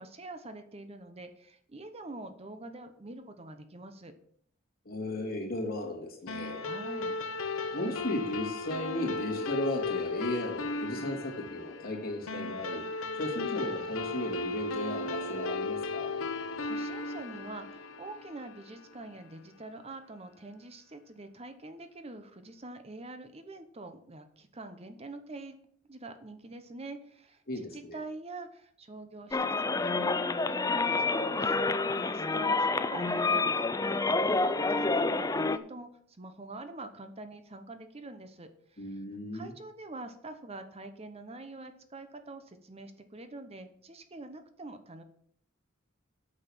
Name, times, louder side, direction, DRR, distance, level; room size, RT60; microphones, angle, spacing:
voice 1, 0.0-4.1 6.6-7.1 16.3-25.6 25.9-27.4 27.7-31.6 31.9-39.0 39.3-45.0, right 2 dB, 30° right, 8 dB, 0.8 m, -45 dB
voice 2, 4.8-6.6 7.7-12.8 13.1-16.1 27.5-28.0 38.8-39.5, left 1 dB, 45° left, -1 dB, 2.9 m, -35 dB
sound 1, 6.3-19.0, left 3 dB, 90° left, 0.8 m, -36 dB
sound 2, 29.3-35.6, left 3 dB, 15° left, 0.4 m, -28 dB
8.8 x 6.5 x 7.5 m, 0.63 s
head